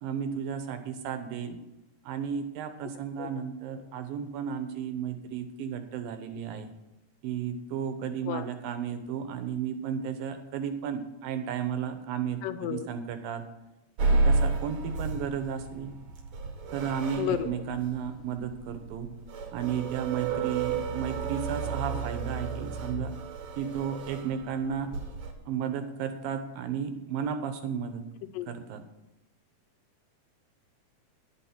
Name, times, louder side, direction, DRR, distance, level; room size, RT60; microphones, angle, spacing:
voice 1, 0.0-1.6 2.0-6.7 7.2-13.4 14.0-15.9 16.7-19.1 19.5-23.1 23.6-24.9 25.5-28.0 28.5-28.8, right 8 dB, 80° right, 8 dB, 2.7 m, -33 dB
voice 2, 12.4-12.9 17.2-17.5 28.3-28.5, left 12 dB, 80° left, 11 dB, 2.2 m, -31 dB
sound 1, 14.0-25.3, right 3 dB, 60° right, 2.0 m, -31 dB
9.9 x 9.9 x 5.9 m, 0.94 s
omnidirectional pair, 4.1 m